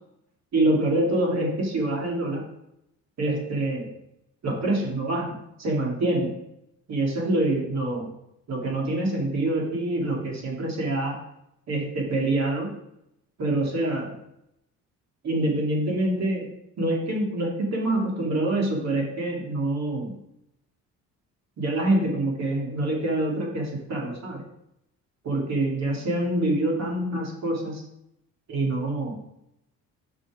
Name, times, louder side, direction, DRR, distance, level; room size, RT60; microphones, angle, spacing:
voice 1, 0.5-2.4 3.2-3.9 4.4-6.3 6.9-8.1 8.5-11.2 11.7-12.7 13.4-14.2 15.2-16.5 16.8-20.2 21.6-24.4 25.2-27.8 28.5-29.2, right 1 dB, 55° right, -1 dB, 2.6 m, -26 dB
5.9 x 5.7 x 4.9 m, 0.80 s
cardioid pair, 90°, 32 cm